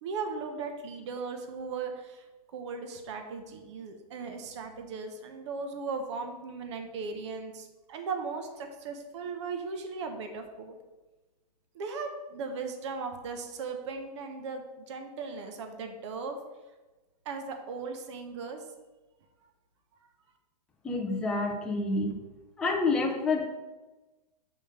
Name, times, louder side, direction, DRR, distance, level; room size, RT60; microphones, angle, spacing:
voice 1, 0.0-2.2 2.5-10.7 11.7-16.4 17.2-18.6, right 4 dB, 45° right, 5 dB, 1.0 m, -37 dB
voice 2, 20.8-22.2 22.6-23.4, left 3 dB, 5° left, 0 dB, 0.3 m, -28 dB
5.4 x 5.3 x 6.5 m, 1.2 s
hypercardioid pair, 170°, 21 cm